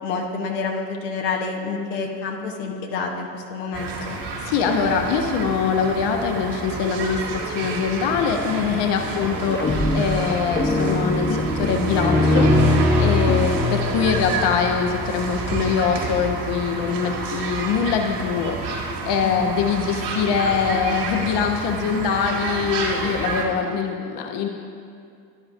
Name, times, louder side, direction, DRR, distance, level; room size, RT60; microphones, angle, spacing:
voice 1, 0.0-4.2 9.0-9.4 13.2-13.7 19.2-19.6, left 4 dB, 80° left, 1 dB, 1.2 m, -29 dB
sound 1, 3.7-23.5, right 4 dB, 55° right, 2.1 m, -30 dB
voice 2, 4.4-24.5, left 6 dB, 55° left, 4 dB, 1.0 m, -23 dB
sound 2, 9.3-13.6, left 1 dB, 20° left, 1.0 m, -23 dB
sound 3, 11.4-15.2, left 2 dB, 90° right, 1.5 m, -23 dB
14.0 x 10.5 x 2.6 m, 2.4 s
hypercardioid pair, 60°, 50 cm